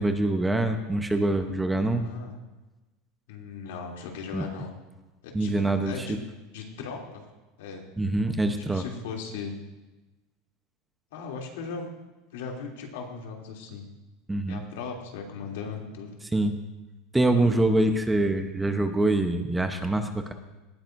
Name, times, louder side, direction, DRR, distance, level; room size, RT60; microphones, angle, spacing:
voice 1, 0.0-2.1 4.3-4.4 5.3-6.1 8.0-8.8 14.3-14.6 16.3-16.5 17.1-20.3, right 2 dB, 5° right, 6 dB, 0.9 m, -25 dB
voice 2, 2.0-2.4 3.3-4.7 5.2-6.2 6.5-7.2 7.6-7.8 8.6-9.5 11.1-11.9 12.3-13.9 14.5-16.2, left 5 dB, 85° left, 0 dB, 3.0 m, -38 dB
19.0 x 14.0 x 2.6 m, 1.1 s
supercardioid pair, 145°, 0 cm